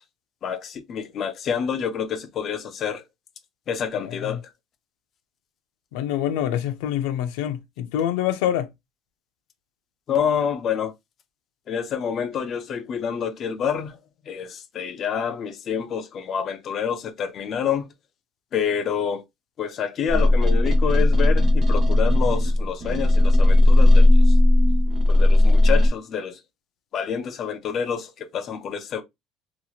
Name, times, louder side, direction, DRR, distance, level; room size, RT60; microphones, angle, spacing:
voice 1, 0.4-3.0 3.7-4.4 10.1-10.9 11.7-14.0 14.3-17.9 18.5-19.2 19.6-24.4 25.1-26.4 26.9-29.0, left 7 dB, 30° left, 0.4 m, -28 dB
voice 2, 4.0-4.4 5.9-8.7, left 10 dB, 90° left, 0.4 m, -26 dB
sound 1, 20.1-25.9, left 1 dB, 25° right, 0.5 m, -16 dB
2.9 x 2.8 x 2.3 m
cardioid pair, 180°, 0 cm